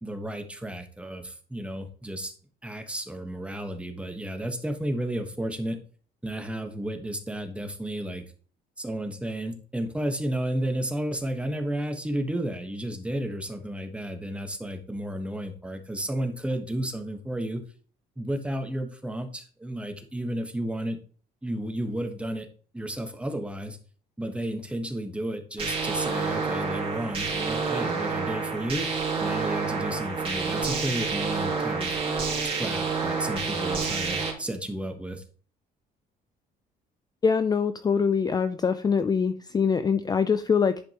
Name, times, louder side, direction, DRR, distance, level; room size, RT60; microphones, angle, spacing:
voice 1, 0.0-2.3 2.6-5.8 6.2-8.2 8.8-17.6 18.2-21.0 21.4-22.5 22.7-23.8 24.2-28.9 29.2-32.0 32.6-35.2, right 1 dB, 5° right, 5 dB, 1.3 m, -32 dB
sound 1, 25.6-34.3, right 4 dB, 35° right, 3.1 m, -28 dB
voice 2, 37.2-40.8, left 6 dB, 25° left, 11 dB, 0.4 m, -24 dB
10.5 x 5.2 x 2.9 m, 0.42 s
cardioid pair, 110°, 17 cm